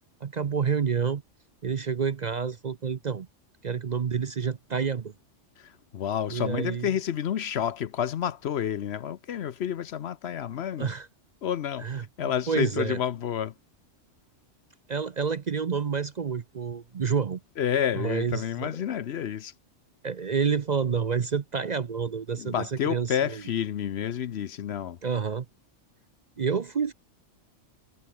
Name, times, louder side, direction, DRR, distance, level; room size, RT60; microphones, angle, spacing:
voice 1, 0.2-1.2 1.6-3.3 3.6-5.1 6.3-6.9 10.8-11.1 11.8-13.0 14.9-17.4 17.9-18.7 20.0-23.4 25.0-25.5 26.4-26.9, right 6 dB, 45° right, 0.7 m, -29 dB
voice 2, 5.6-10.9 11.4-13.5 17.6-19.5 22.4-25.0, left 9 dB, 65° left, 0.9 m, -30 dB
omnidirectional pair, 1.3 m